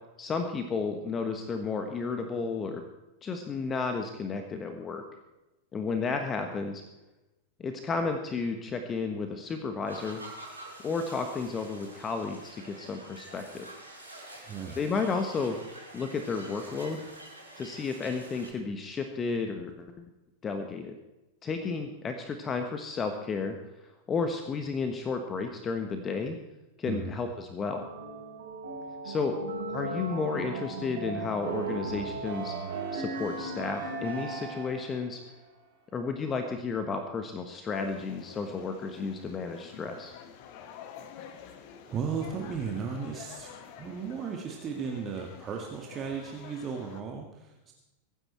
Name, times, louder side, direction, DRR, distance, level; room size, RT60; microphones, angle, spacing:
voice 1, 0.2-2.8 3.2-5.0 5.7-6.8 7.6-10.2 10.8-13.7 14.8-15.6 15.9-17.0 17.6-20.1 20.4-21.0 21.4-23.6 24.1-26.4 26.8-27.9 29.0-29.4 29.7-32.5 32.9-35.2 35.9-40.2, left 4 dB, 20° left, 6 dB, 1.3 m, -32 dB
sound 1, 9.8-18.5, right 1 dB, 85° right, 6.3 m, -47 dB
voice 2, 14.5-14.8 26.9-27.2 41.3-41.6 41.9-47.7, right 6 dB, 25° right, 1 dB, 1.8 m, -36 dB
sound 2, 27.8-35.0, right 3 dB, 60° right, 4.3 m, -36 dB
sound 3, 37.7-47.0, left 8 dB, 45° left, 1.5 m, -48 dB
23.0 x 10.0 x 4.5 m, 1.0 s
figure-of-eight pair, 90°, 0 cm